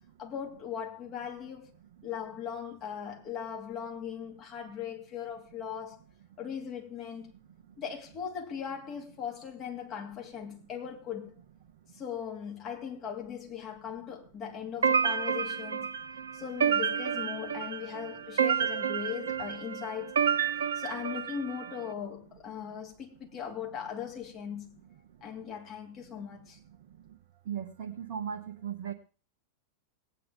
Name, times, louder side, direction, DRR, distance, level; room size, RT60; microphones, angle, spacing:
voice 1, 0.2-1.7 2.0-6.0 6.4-7.3 7.8-11.3 11.9-15.9 16.3-20.1 20.7-24.8 25.2-26.6, left 8 dB, 30° left, 2.7 m, -39 dB
sound 1, 14.8-21.8, right 7 dB, 65° right, 0.8 m, -30 dB
voice 2, 27.5-28.9, right 8 dB, 50° right, 1.1 m, -36 dB
18.0 x 9.2 x 3.6 m
figure-of-eight pair, 90°, 0 cm